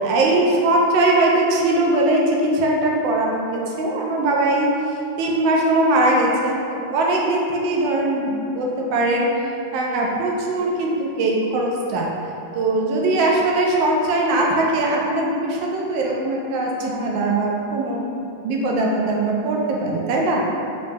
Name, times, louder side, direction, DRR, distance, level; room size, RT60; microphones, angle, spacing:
voice 1, 0.0-4.7 5.2-9.3 9.7-12.1 12.5-18.1 18.4-20.4, right 2 dB, 75° right, -2 dB, 1.3 m, -20 dB
4.0 x 2.7 x 3.5 m, 2.7 s
omnidirectional pair, 2.3 m